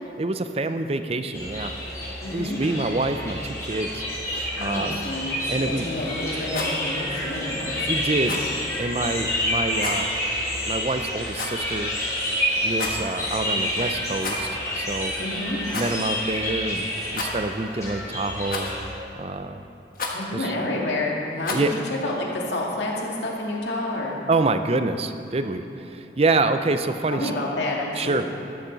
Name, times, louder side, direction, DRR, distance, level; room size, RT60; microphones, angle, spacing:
voice 1, 0.2-1.7 2.3-5.0 5.5-5.9 7.9-8.4 8.8-10.1 10.7-12.3 12.6-15.1 15.7-18.7 19.2-19.6 20.3-20.5 21.5-21.7 24.3-27.3 27.9-28.2, right 2 dB, 35° right, 9 dB, 0.5 m, -26 dB
sound 1, 1.3-18.9, left 1 dB, 15° left, 3.4 m, -29 dB
voice 2, 2.2-2.6 4.6-8.2 15.2-15.6 20.1-24.2 27.1-28.3, left 1 dB, 75° left, -3 dB, 2.2 m, -29 dB
Rattle, 6.4-6.8 8.2-8.5 9.8-10.0 11.3-11.7 12.7-13.1 14.2-14.6 14.9-15.0 15.7-16.0 17.1-17.6 18.5-18.9 19.9-20.2 21.4-21.8, left 3 dB, 50° left, 1.4 m, -32 dB
13.5 x 13.5 x 4.0 m, 2.9 s
head